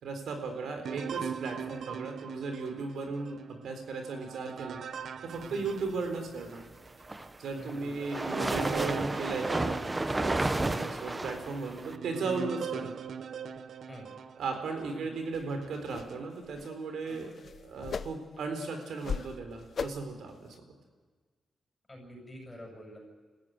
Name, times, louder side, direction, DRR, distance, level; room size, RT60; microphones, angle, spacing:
voice 1, 0.0-4.8 5.2-6.6 7.4-12.9 14.4-20.5, right 4 dB, 90° right, 5 dB, 3.9 m, -36 dB
sound 1, 0.8-6.6 7.1-7.2 7.8-15.0 15.6-16.2, right 7 dB, 65° right, 0.7 m, -41 dB
sound 2, 6.9-12.0, right 2 dB, 15° right, 0.8 m, -32 dB
voice 2, 7.5-8.1 13.9-14.1 15.0-15.1 17.0-17.2 21.9-23.0, equal, 10° left, 0 dB, 6.5 m, -47 dB
sound 3, 15.3-15.5 15.9-16.1 16.4-16.7 17.1-18.4 18.8-19.4 19.7-20.1 20.5-20.6, left 6 dB, 50° left, 0.7 m, -37 dB
26.5 x 14.5 x 9.5 m, 1.4 s
wide cardioid pair, 135°, 0 cm